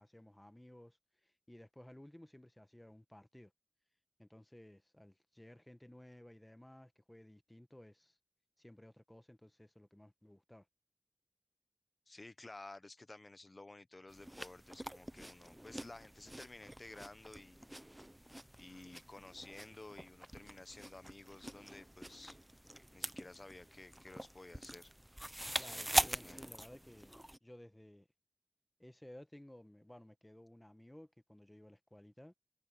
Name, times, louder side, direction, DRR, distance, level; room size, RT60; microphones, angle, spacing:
voice 1, 0.0-3.5 4.2-8.2 8.6-10.7 25.6-27.1 27.4-28.1 28.8-32.3, left 1 dB, 20° left, 1.2 m, -57 dB
voice 2, 12.1-17.6 18.6-22.4 22.9-24.9 25.7-26.5, left 2 dB, 60° left, 1.1 m, -53 dB
sound 1, 14.1-27.4, right 1 dB, 15° right, 0.7 m, -43 dB
wide cardioid pair, 50°, 0 cm